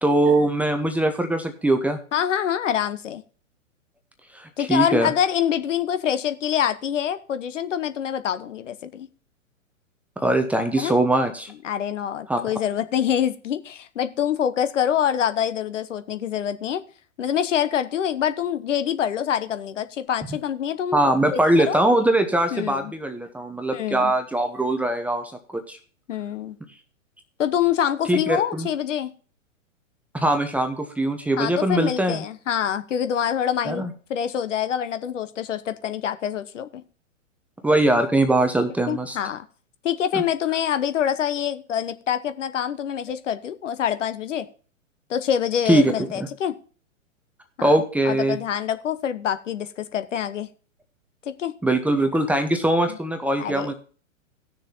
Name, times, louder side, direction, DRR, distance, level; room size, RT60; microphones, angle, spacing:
voice 1, 0.0-2.0 4.3-5.1 10.2-11.5 12.3-12.4 20.9-25.3 25.7-25.8 28.1-28.7 30.1-32.2 33.6-33.9 37.6-39.2 40.1-40.2 45.7-46.3 47.6-48.4 51.6-53.7, right 1 dB, 5° right, 6 dB, 0.8 m, -21 dB
voice 2, 2.1-3.2 4.6-9.1 10.8-10.9 11.6-16.8 17.2-21.8 22.5-22.9 23.7-24.1 26.1-26.6 27.4-29.1 31.4-33.8 34.1-36.8 38.9-39.4 39.8-44.5 45.1-46.6 47.6-47.7 48.0-50.5 51.3-51.5 52.9-53.0 53.4-53.7, left 9 dB, 65° left, 12 dB, 1.0 m, -25 dB
17.5 x 6.6 x 2.8 m, 0.40 s
figure-of-eight pair, 115°, 40 cm